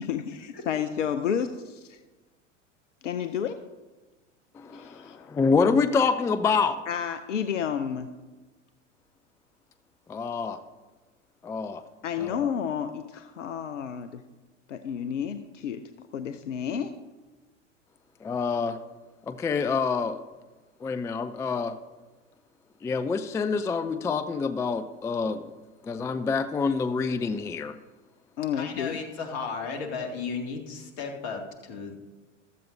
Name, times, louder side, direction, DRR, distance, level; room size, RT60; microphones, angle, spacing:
voice 1, 0.0-2.0 3.0-3.6 4.7-5.3 6.9-8.1 12.0-14.2 14.7-16.9 28.4-29.0, left 8 dB, 75° left, 10 dB, 0.7 m, -31 dB
voice 2, 4.5-6.8 10.1-10.6 11.4-11.8 12.2-12.5 18.2-18.8 19.3-20.2 20.8-21.8 22.8-25.4 25.8-27.8, left 5 dB, 10° left, 11 dB, 0.3 m, -27 dB
voice 3, 28.5-32.0, left 5 dB, 55° left, 3 dB, 2.3 m, -34 dB
15.0 x 13.0 x 2.7 m, 1.2 s
figure-of-eight pair, 85°, 37 cm